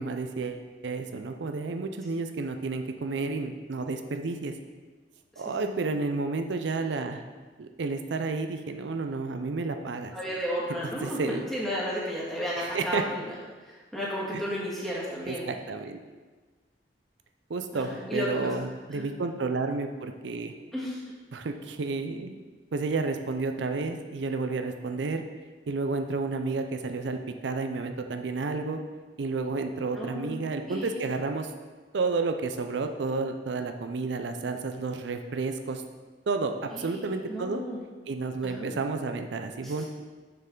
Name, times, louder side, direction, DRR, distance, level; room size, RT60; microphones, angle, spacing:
voice 1, 0.0-4.5 5.4-7.2 7.6-10.1 11.0-11.5 12.6-13.0 14.3-14.4 15.3-16.0 17.5-20.5 21.3-22.4 22.7-25.2 25.7-27.2 27.4-28.8 29.2-31.5 31.9-35.8 36.3-37.6 38.1-39.8, right 3 dB, 75° right, 6 dB, 0.5 m, -31 dB
voice 2, 5.3-5.7 10.1-13.3 13.6-15.5 17.7-18.6 18.9-19.1 20.7-21.0 29.9-30.3 30.7-30.9 36.7-37.8 38.4-38.7 39.6-39.7, equal, ahead, -7 dB, 1.7 m, -33 dB
6.7 x 6.6 x 3.7 m, 1.4 s
head